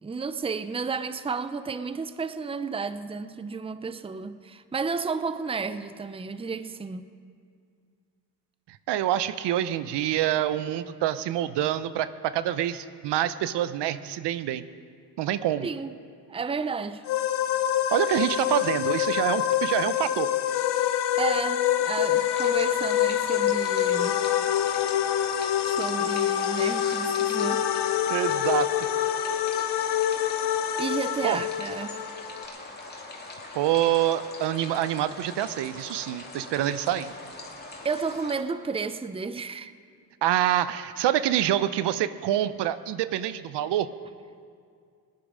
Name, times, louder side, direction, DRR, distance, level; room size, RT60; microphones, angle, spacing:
voice 1, 0.0-7.1 15.6-15.9 16.3-17.1 20.7-20.9 21.2-24.2 25.6-27.7 30.8-32.0 37.8-39.7, right 5 dB, 15° right, 0.5 m, -32 dB
voice 2, 8.9-14.6 15.2-15.7 17.9-20.3 28.1-28.7 31.2-31.4 33.5-37.1 40.2-43.9, right 12 dB, 80° right, 0.7 m, -26 dB
sound 1, 17.1-32.5, left 11 dB, 70° left, 0.8 m, -26 dB
sound 2, 22.1-38.4, left 2 dB, 25° left, 2.5 m, -41 dB
19.0 x 10.5 x 5.0 m
cardioid pair, 70°, 41 cm